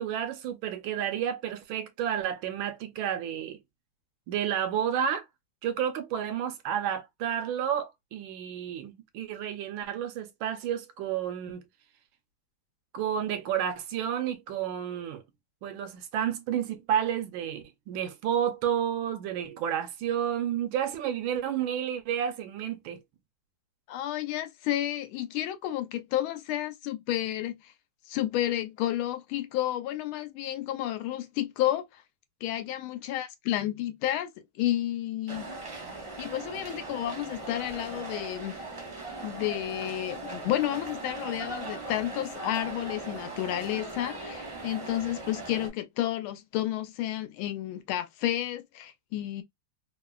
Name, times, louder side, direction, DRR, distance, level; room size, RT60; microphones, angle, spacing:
voice 1, 0.0-3.6 4.3-5.2 5.6-11.6 12.9-15.2 15.6-23.0, right 9 dB, 75° right, 1.3 m, -31 dB
voice 2, 23.9-27.7 28.1-32.0 32.4-35.5 36.2-38.5 39.2-49.4, left 13 dB, 80° left, 1.4 m, -31 dB
sound 1, 35.3-45.7, right 2 dB, 25° right, 0.7 m, -39 dB
3.5 x 2.0 x 2.3 m
omnidirectional pair, 2.3 m